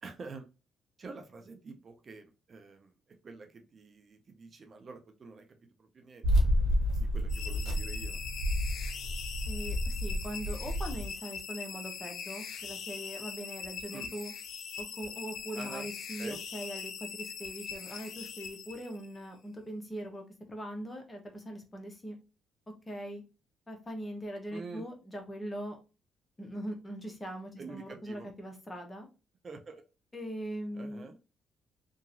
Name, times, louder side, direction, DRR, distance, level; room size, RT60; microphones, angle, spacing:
voice 1, 0.0-0.5 1.0-2.9 3.2-6.5 7.0-8.2 13.9-14.1 15.5-15.9 16.2-16.4 24.5-24.9 27.6-28.3 29.4-29.8 30.7-31.2, right 4 dB, 45° right, 5 dB, 0.5 m, -47 dB
sound 1, 6.2-11.1, equal, 80° right, 0.9 m, -30 dB
sound 2, 7.3-19.2, left 6 dB, 70° left, 0.4 m, -42 dB
voice 2, 9.5-14.3 14.8-20.2 20.5-22.2 22.9-23.2 23.7-25.8 26.4-29.1 30.1-31.1, equal, 20° left, 3 dB, 0.9 m, -41 dB
2.9 x 2.5 x 2.5 m, 0.31 s
cardioid pair, 90°, 0 cm